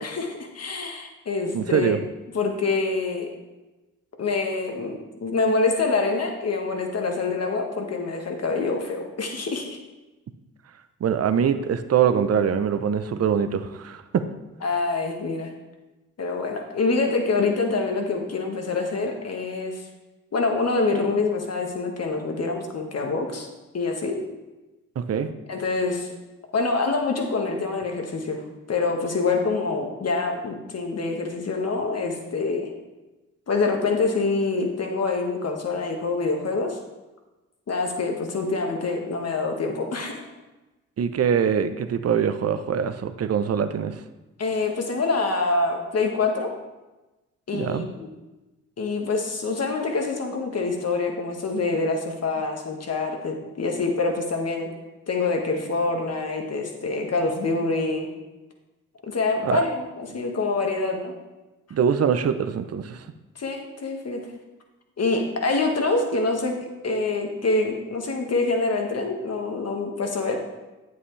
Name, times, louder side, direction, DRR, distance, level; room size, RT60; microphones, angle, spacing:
voice 1, 0.0-1.9 2.3-3.3 4.2-4.9 5.2-9.8 14.6-15.5 16.2-19.8 20.3-23.5 23.7-24.2 25.5-26.1 26.5-28.4 28.7-32.7 33.5-36.8 37.7-40.3 44.4-46.5 47.5-48.1 48.8-54.7 55.1-58.1 59.0-61.1 63.3-64.2 65.0-66.6 66.8-70.4, left 3 dB, 50° left, 2 dB, 1.6 m, -26 dB
voice 2, 1.5-2.0 11.0-14.3 25.0-25.3 41.0-43.9 47.5-47.9 59.4-59.6 61.7-63.1, right 7 dB, 50° right, 10 dB, 0.7 m, -23 dB
8.5 x 7.6 x 3.3 m, 1.1 s
supercardioid pair, 55°, 33 cm